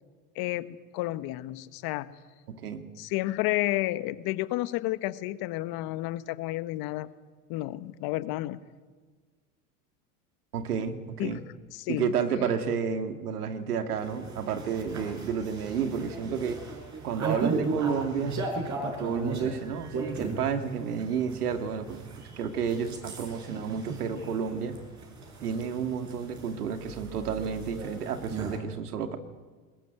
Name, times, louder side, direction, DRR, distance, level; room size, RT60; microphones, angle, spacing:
voice 1, 0.3-2.1 3.0-7.1 7.5-8.6 11.2-11.4 11.7-12.1, left 17 dB, 55° left, 14 dB, 1.3 m, -31 dB
voice 2, 2.5-2.8 10.5-11.4 11.9-16.6 17.0-18.4 19.0-22.0 22.4-24.8 25.4-29.2, right 7 dB, 85° right, 8 dB, 2.2 m, -31 dB
sound 1, 14.0-28.6, right 3 dB, 40° right, 7.1 m, -37 dB
21.0 x 21.0 x 9.3 m, 1.5 s
hypercardioid pair, 85°, 44 cm